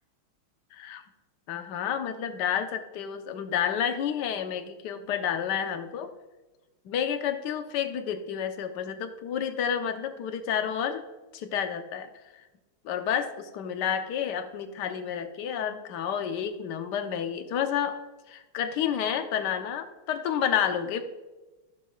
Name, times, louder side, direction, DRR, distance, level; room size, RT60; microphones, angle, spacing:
voice 1, 0.7-1.0 1.5-6.1 6.8-11.0 11.3-12.1 12.8-18.0 18.3-21.0, left 8 dB, 60° left, 7 dB, 1.3 m, -30 dB
15.0 x 7.4 x 2.4 m, 1.1 s
omnidirectional pair, 2.4 m